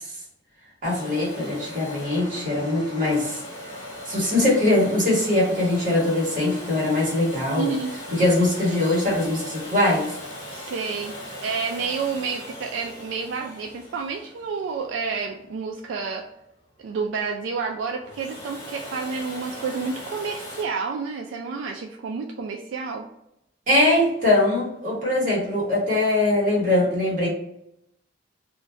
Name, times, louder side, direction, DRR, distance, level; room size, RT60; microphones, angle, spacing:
Domestic sounds home sounds, 0.8-15.6 17.9-20.6, left 1 dB, 30° left, 0.9 m, -39 dB
voice 1, 0.8-3.4 4.1-7.7 8.1-10.1 23.7-27.3, left 1 dB, 45° right, -5 dB, 1.3 m, -22 dB
voice 2, 7.6-7.9 10.5-11.1 11.4-16.2 16.8-23.1, right 5 dB, 80° right, 2 dB, 0.3 m, -29 dB
2.5 x 2.2 x 3.2 m, 0.80 s
head